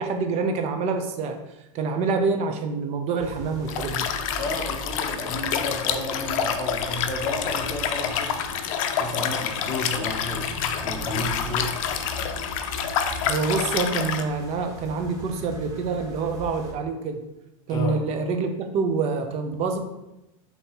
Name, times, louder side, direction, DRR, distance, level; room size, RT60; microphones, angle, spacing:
voice 1, 0.0-1.4 1.7-4.1 13.2-17.2 17.7-19.8, right 4 dB, 40° right, 5 dB, 0.6 m, -26 dB
sound 1, 3.2-16.7, right 1 dB, 20° right, 1.0 m, -40 dB
Liquid, 3.7-14.2, left 8 dB, 70° left, 0.5 m, -28 dB
voice 2, 4.4-8.5 9.0-11.8 17.7-18.0, left 1 dB, 20° left, 0 dB, 0.9 m, -31 dB
5.2 x 2.9 x 2.9 m, 0.93 s
supercardioid pair, 125°, 18 cm